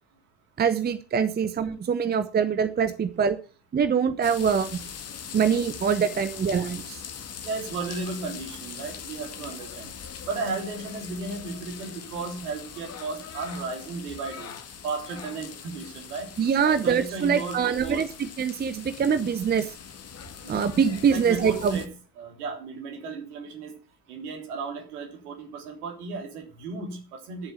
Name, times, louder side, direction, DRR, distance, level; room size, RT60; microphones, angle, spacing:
voice 1, 0.6-3.4 3.7-4.8 5.3-7.0 16.4-19.7 20.5-21.8, right 7 dB, 20° right, 12 dB, 0.9 m, -24 dB
sound 1, 4.2-21.9, left 7 dB, 30° left, 1.8 m, -41 dB
voice 2, 7.4-9.9 10.2-14.5 14.8-16.3 16.6-18.0 20.4-20.6 21.1-23.7 24.1-27.5, right 4 dB, 65° right, 3 dB, 3.6 m, -35 dB
11.5 x 7.2 x 8.3 m, 0.38 s
figure-of-eight pair, 60°, 48 cm